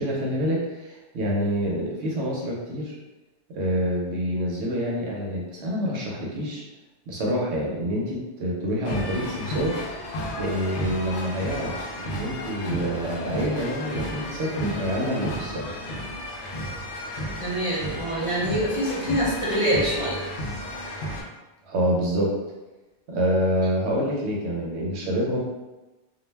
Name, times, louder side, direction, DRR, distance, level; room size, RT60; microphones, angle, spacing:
voice 1, 0.0-2.9 3.5-6.6 7.1-9.8 10.4-11.7 12.0-15.7 21.6-22.4 23.1-25.4, equal, 75° right, -3 dB, 0.9 m, -27 dB
sound 1, 8.8-21.2, equal, 75° left, 0.9 m, -33 dB
voice 2, 17.4-20.2, equal, 35° left, -9 dB, 0.8 m, -25 dB
2.4 x 2.1 x 3.2 m, 1.1 s
omnidirectional pair, 1.2 m